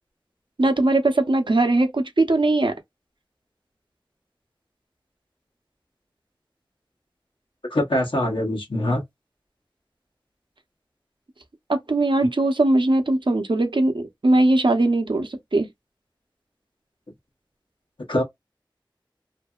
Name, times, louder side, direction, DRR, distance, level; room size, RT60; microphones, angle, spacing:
voice 1, 0.6-2.7 11.7-15.7, right 2 dB, 75° right, 0.6 m, -20 dB
voice 2, 7.7-9.0 18.1-18.2, left 1 dB, 90° left, 0.8 m, -23 dB
2.7 x 2.6 x 2.3 m
wide cardioid pair, 40°, 8 cm